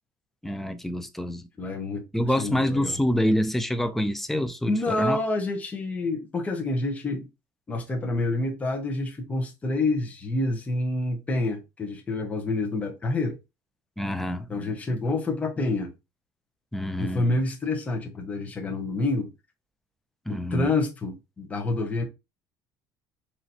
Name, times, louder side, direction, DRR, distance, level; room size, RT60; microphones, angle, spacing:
voice 1, 0.4-1.5 2.1-5.2 14.0-14.7 16.7-17.3 20.3-20.7, equal, 5° left, 0.4 m, -27 dB
voice 2, 1.6-3.0 4.7-7.3 7.7-13.4 14.5-15.9 17.0-19.3 20.3-22.0, left 2 dB, 20° left, 1.0 m, -28 dB
4.1 x 3.0 x 2.7 m
cardioid pair, 135°, 8 cm